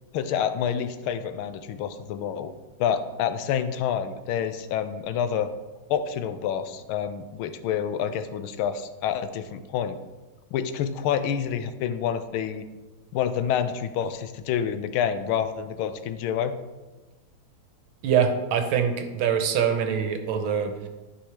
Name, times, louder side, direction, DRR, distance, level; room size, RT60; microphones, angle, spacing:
voice 1, 0.1-2.5 2.8-5.5 5.9-10.0 10.5-12.6 13.1-16.5, left 8 dB, 80° left, 11 dB, 1.4 m, -28 dB
voice 2, 18.0-20.9, right 7 dB, 75° right, 7 dB, 1.6 m, -24 dB
11.5 x 5.4 x 3.3 m, 1.1 s
omnidirectional pair, 2.3 m